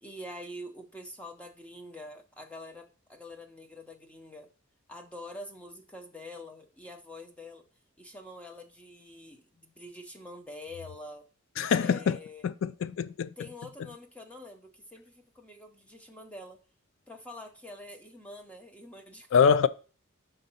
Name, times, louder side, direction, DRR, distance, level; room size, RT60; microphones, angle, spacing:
voice 1, 0.0-4.5 4.9-7.6 8.0-11.2 11.8-12.5 13.4-16.6 17.1-19.6, left 1 dB, 5° left, 0.7 m, -46 dB
voice 2, 11.6-12.2 12.4-13.3 19.3-19.7, left 6 dB, 65° left, 0.3 m, -24 dB
5.6 x 3.9 x 5.5 m
head